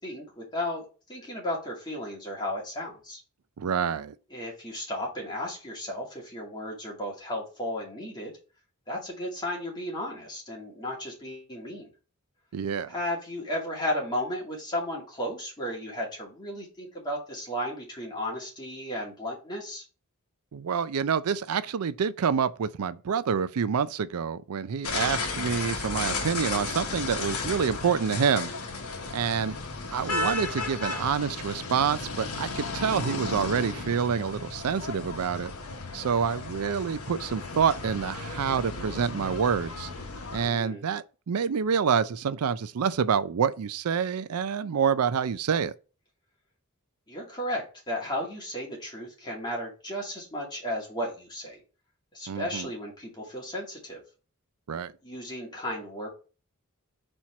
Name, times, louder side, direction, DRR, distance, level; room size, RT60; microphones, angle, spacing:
voice 1, 0.0-3.2 4.3-8.3 8.9-11.9 12.9-19.8 40.5-40.8 47.1-51.6 52.1-54.0 55.0-56.1, left 1 dB, 20° left, 2.4 m, -34 dB
voice 2, 3.6-4.1 12.5-12.9 20.5-28.5 29.1-29.6 29.9-35.5 35.9-39.9 40.3-45.7 52.3-52.7 54.7-54.9, right 7 dB, 85° right, 0.4 m, -27 dB
sound 1, 24.8-40.5, left 3 dB, 80° left, 1.2 m, -34 dB
4.4 x 4.4 x 5.7 m
head